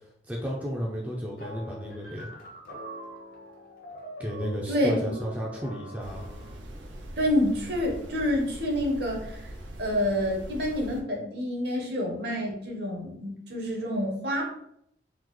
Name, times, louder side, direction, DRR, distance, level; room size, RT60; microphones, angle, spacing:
voice 1, 0.3-2.3 4.2-6.3, equal, 10° right, -3 dB, 0.3 m, -33 dB
sound 1, 1.4-6.6, equal, 50° left, 0.7 m, -43 dB
sound 2, 6.0-11.0, equal, 85° right, 0.5 m, -42 dB
voice 2, 7.2-9.5 9.8-14.5, left 1 dB, 60° right, 0 dB, 0.8 m, -28 dB
3.7 x 2.0 x 3.0 m, 0.73 s
head